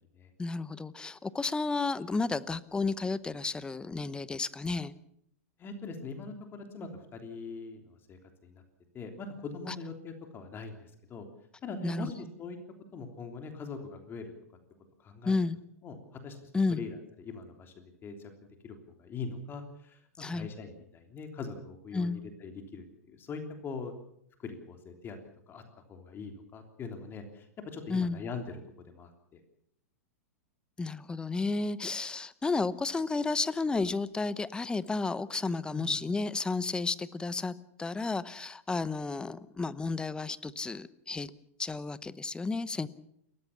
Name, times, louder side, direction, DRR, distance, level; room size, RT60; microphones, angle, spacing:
voice 1, 0.4-4.9 9.7-9.8 11.8-12.1 15.2-15.6 16.5-16.8 20.2-20.5 21.9-22.2 27.9-28.2 30.8-41.3 41.6-42.9, left 3 dB, 10° left, 18 dB, 0.9 m, -32 dB
voice 2, 5.6-8.6 8.9-11.2 11.6-12.6 12.9-14.3 15.0-15.3 15.8-18.3 18.6-23.9 24.4-25.2 25.5-25.6 25.9-28.6 28.8-29.4 35.7-36.0, left 4 dB, 25° left, 5 dB, 3.3 m, -42 dB
29.5 x 14.5 x 7.2 m, 0.73 s
hypercardioid pair, 100°, 8 cm